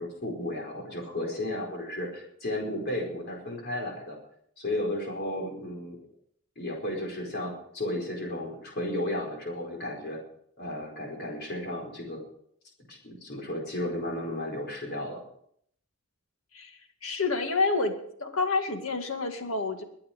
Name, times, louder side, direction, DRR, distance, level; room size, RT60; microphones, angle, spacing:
voice 1, 0.0-4.2 4.6-6.0 6.6-10.2 10.6-12.2 12.9-15.2, left 1 dB, 50° left, 0 dB, 4.7 m, -33 dB
voice 2, 16.5-17.9 18.2-19.8, left 3 dB, 70° left, 5 dB, 2.1 m, -28 dB
22.0 x 8.7 x 5.2 m, 0.68 s
head